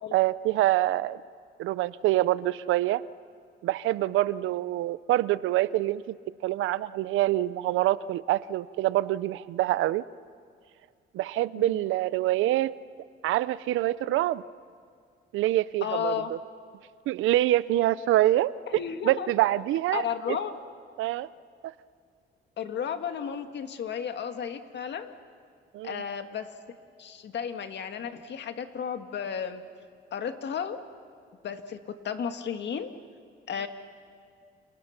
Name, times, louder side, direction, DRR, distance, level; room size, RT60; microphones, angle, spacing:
voice 1, 0.1-1.2 1.6-3.0 3.6-6.2 6.4-10.0 11.1-12.7 13.2-14.4 15.3-16.4 17.1-18.6 19.0-20.4 21.0-21.3 21.6-21.7 25.7-26.0, right 15 dB, 90° right, 17 dB, 0.7 m, -25 dB
voice 2, 15.8-16.3 18.7-19.3 19.9-20.5 22.6-25.1 25.8-26.5 27.0-29.6 30.1-30.8 31.4-32.9 33.5-33.7, left 8 dB, 60° left, 7 dB, 2.0 m, -33 dB
30.0 x 28.5 x 5.9 m, 2.3 s
cardioid pair, 90°, 20 cm